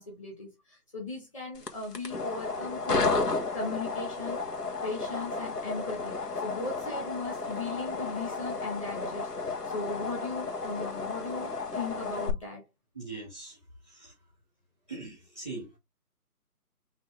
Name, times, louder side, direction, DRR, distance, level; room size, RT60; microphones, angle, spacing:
voice 1, 0.0-3.1 3.5-4.4 4.8-12.6, left 3 dB, 20° left, 1.3 m, -38 dB
sound 1, 1.5-12.3, left 3 dB, 85° left, 1.5 m, -33 dB
voice 2, 12.9-14.3 14.9-15.8, right 3 dB, 5° left, 0.7 m, -43 dB
5.6 x 2.9 x 3.3 m
figure-of-eight pair, 155°, 47 cm